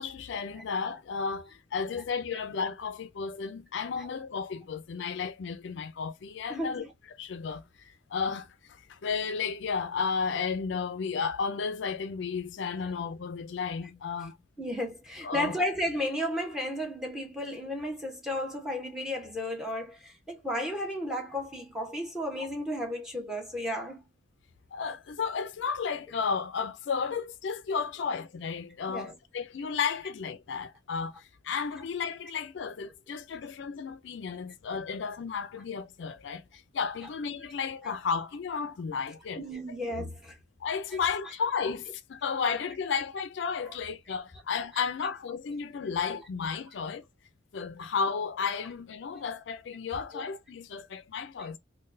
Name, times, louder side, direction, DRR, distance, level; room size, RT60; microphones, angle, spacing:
voice 1, 0.0-6.9 7.2-8.5 8.9-14.3 15.2-15.6 24.7-36.4 36.7-39.5 40.6-47.0 47.5-51.6, left 5 dB, 65° left, 0.4 m, -33 dB
voice 2, 6.5-6.9 14.6-24.0 28.9-29.1 39.4-40.4 40.9-41.3 43.7-43.8 50.1-50.2 51.4-51.5, equal, 5° right, 0.9 m, -34 dB
3.8 x 2.2 x 2.5 m
head